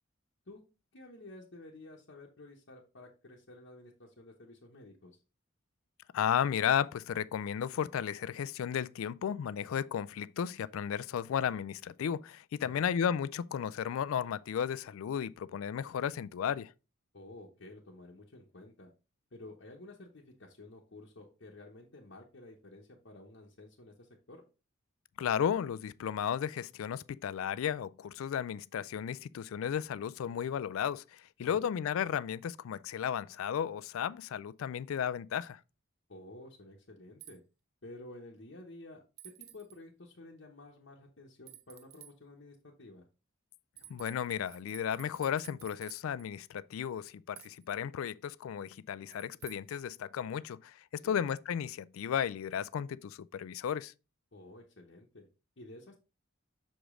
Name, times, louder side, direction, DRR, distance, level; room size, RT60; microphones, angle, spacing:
voice 1, 0.9-5.2 12.6-12.9 17.1-18.9 19.3-24.4 31.5-31.7 36.1-37.4 37.8-39.0 39.4-43.0 51.0-51.2 54.3-55.3 55.6-56.0, left 2 dB, 55° left, 0.9 m, -52 dB
voice 2, 6.1-16.7 25.2-35.6 43.9-53.9, left 8 dB, 75° left, 0.3 m, -34 dB
sound 1, 37.2-37.4 39.2-39.8 41.5-42.1 43.7-46.3 47.3-47.8 49.1-49.8, right 12 dB, 45° right, 0.7 m, -52 dB
6.2 x 5.0 x 3.6 m
head